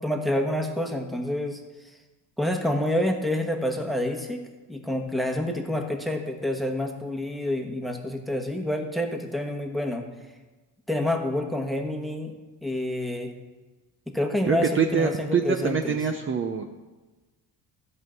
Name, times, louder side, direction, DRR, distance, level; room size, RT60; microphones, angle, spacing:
voice 1, 0.0-1.6 2.4-4.4 4.7-10.0 10.9-12.3 12.6-13.3 14.1-16.0, left 1 dB, ahead, 2 dB, 1.2 m, -28 dB
voice 2, 14.4-16.7, right 6 dB, 30° right, 4 dB, 0.7 m, -25 dB
13.5 x 5.5 x 7.7 m, 1.2 s
cardioid pair, 140°, 39 cm